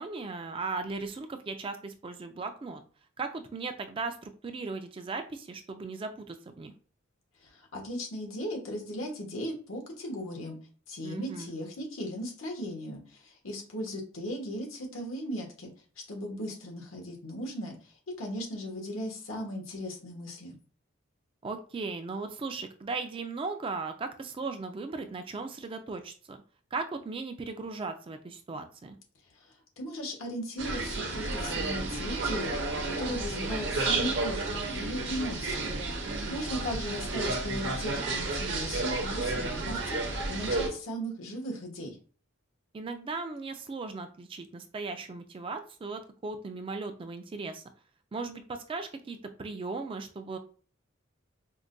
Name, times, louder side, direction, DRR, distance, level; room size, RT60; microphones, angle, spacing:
voice 1, 0.0-2.8 3.2-6.7 11.0-11.5 21.4-26.4 26.7-29.0 36.0-36.4 42.7-47.6 48.1-50.4, right 3 dB, 25° right, 7 dB, 0.3 m, -37 dB
voice 2, 7.4-10.6 10.9-15.7 16.1-20.6 29.3-35.7 36.3-42.0, equal, 85° left, 1 dB, 1.2 m, -37 dB
sound 1, 30.6-40.7, right 3 dB, 60° right, 0.7 m, -32 dB
4.6 x 2.2 x 2.5 m, 0.40 s
head